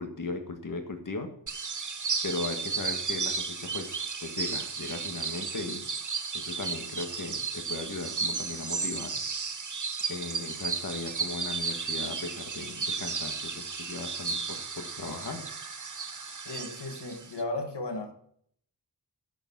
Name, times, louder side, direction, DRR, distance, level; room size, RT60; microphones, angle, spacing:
voice 1, 0.0-1.3 2.2-5.8 6.3-9.2 10.1-15.4, left 3 dB, 50° left, 1.6 m, -37 dB
sound 1, 1.5-17.4, right 5 dB, 45° right, 1.1 m, -34 dB
voice 2, 16.5-18.1, left 2 dB, 70° left, 1.7 m, -35 dB
11.5 x 7.1 x 7.3 m
wide cardioid pair, 90°, 42 cm